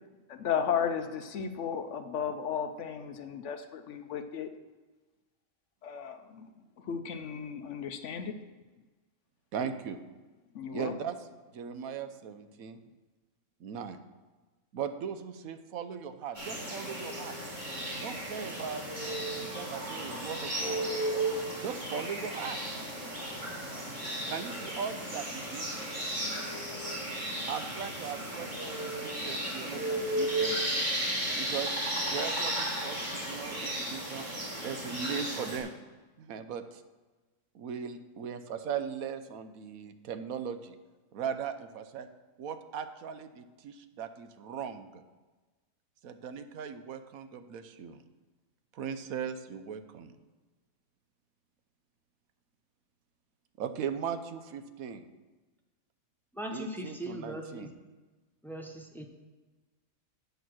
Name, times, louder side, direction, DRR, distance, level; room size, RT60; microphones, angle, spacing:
voice 1, 0.3-4.5 5.8-6.5 6.8-8.4 10.5-10.9, left 7 dB, 65° left, 9 dB, 0.9 m, -34 dB
voice 2, 9.5-10.0 10.7-11.2 11.5-12.8 13.6-14.0 14.7-17.3 18.0-21.3 21.6-22.6 24.3-25.9 27.5-30.7 31.4-31.7 32.1-34.2 34.6-35.7 36.2-36.6 37.5-40.8 41.1-42.1 42.4-45.0 46.0-48.0 48.7-50.1 53.6-55.0 56.5-57.7, right 7 dB, 85° right, 9 dB, 1.2 m, -38 dB
sound 1, 16.3-35.6, right 1 dB, 35° right, 3.2 m, -34 dB
voice 3, 56.3-57.7 58.4-59.1, right 1 dB, ahead, 2 dB, 0.9 m, -39 dB
9.2 x 6.6 x 6.2 m, 1.2 s
omnidirectional pair, 1.4 m